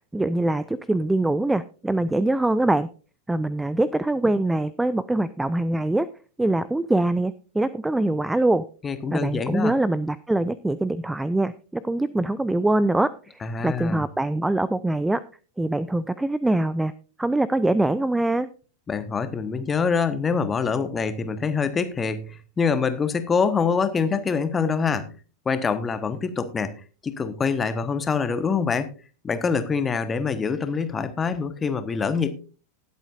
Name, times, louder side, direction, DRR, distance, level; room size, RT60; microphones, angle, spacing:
voice 1, 0.0-2.9 3.3-6.1 6.4-8.7 9.1-15.2 15.6-16.9 17.2-18.5, right 2 dB, 5° right, 18 dB, 0.4 m, -23 dB
voice 2, 8.8-9.7 13.4-14.1 18.9-25.1 25.4-26.7 27.0-28.9 29.2-32.3, left 5 dB, 20° left, 11 dB, 1.2 m, -25 dB
19.5 x 8.1 x 2.5 m, 0.36 s
figure-of-eight pair, 90°, 0 cm